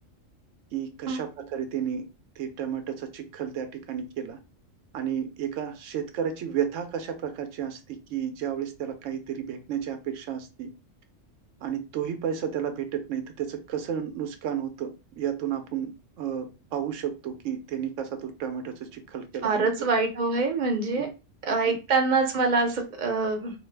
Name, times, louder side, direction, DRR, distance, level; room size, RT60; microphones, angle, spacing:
voice 1, 0.7-2.1 2.4-4.4 4.9-10.7 11.6-19.7 21.0-21.1 21.7-21.8, right 8 dB, 80° right, 1.0 m, -32 dB
voice 2, 19.4-21.1 21.4-23.5, right 3 dB, 45° right, 0.6 m, -25 dB
2.9 x 2.0 x 3.3 m
omnidirectional pair, 1.3 m